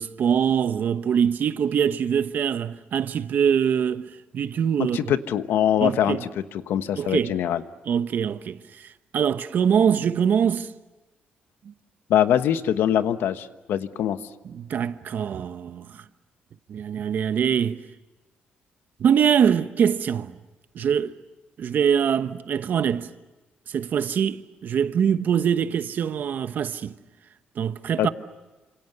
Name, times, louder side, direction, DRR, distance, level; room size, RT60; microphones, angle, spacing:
voice 1, 0.0-4.1 4.3-5.0 5.8-6.2 7.0-7.3 7.9-8.6 9.1-10.7 14.4-15.9 16.7-17.8 19.0-20.3 20.7-21.1 21.6-23.1 23.7-26.9 27.6-28.1, right 8 dB, 55° right, 1.0 m, -23 dB
voice 2, 4.9-7.6 12.1-14.2 28.0-28.1, left 10 dB, 90° left, 1.2 m, -23 dB
29.0 x 27.0 x 6.8 m
cardioid pair, 135°, 4 cm